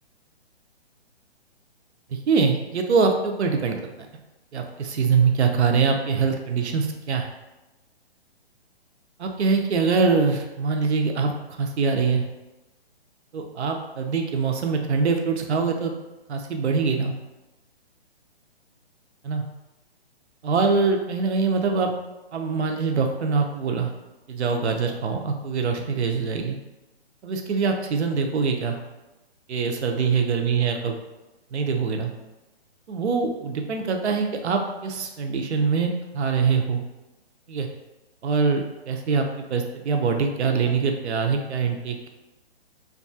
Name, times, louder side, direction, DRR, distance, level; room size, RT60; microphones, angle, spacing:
voice 1, 2.3-3.8 4.5-7.3 9.2-11.3 11.6-12.2 13.3-15.9 16.3-17.1 19.2-19.4 20.4-21.9 22.3-23.9 24.3-26.6 27.2-28.8 29.5-31.0 31.5-32.1 32.9-36.8 37.5-37.7 38.2-39.2 39.5-42.1, right 5 dB, 75° right, 3 dB, 0.6 m, -23 dB
2.6 x 2.3 x 2.6 m, 1.0 s
hypercardioid pair, 170°, 33 cm